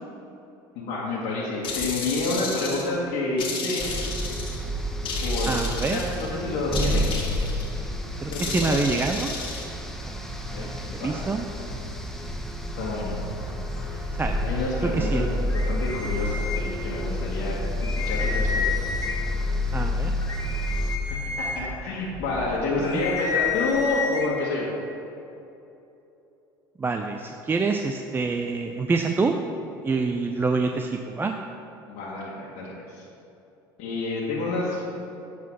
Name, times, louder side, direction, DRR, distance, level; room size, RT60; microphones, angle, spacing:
voice 1, 0.7-3.8 5.2-5.6 5.9-7.2 8.3-8.8 10.4-11.3 12.7-13.2 13.8-14.1 14.4-18.9 21.0-24.7 31.9-33.0 33.8-34.9, left 2 dB, 65° left, -6 dB, 1.6 m, -29 dB
sound 1, 1.6-2.9 3.4-4.6 5.1-6.3 6.7-7.7 8.3-9.7, left 4 dB, 50° left, 1.7 m, -33 dB
sound 2, 3.8-21.0, left 1 dB, 5° left, 0.9 m, -29 dB
voice 2, 5.5-6.0 8.2-9.3 10.1-10.3 10.5-11.5 14.1-14.4 14.8-15.3 19.7-20.1 22.8-23.0 26.8-29.4 29.8-31.3, right 4 dB, 20° right, 4 dB, 0.5 m, -26 dB
sound 3, 15.5-17.1 17.5-17.6 17.8-19.4 19.9-24.3, left 5 dB, 30° left, 1.5 m, -31 dB
8.1 x 4.7 x 6.0 m, 2.9 s
hypercardioid pair, 85°, 11 cm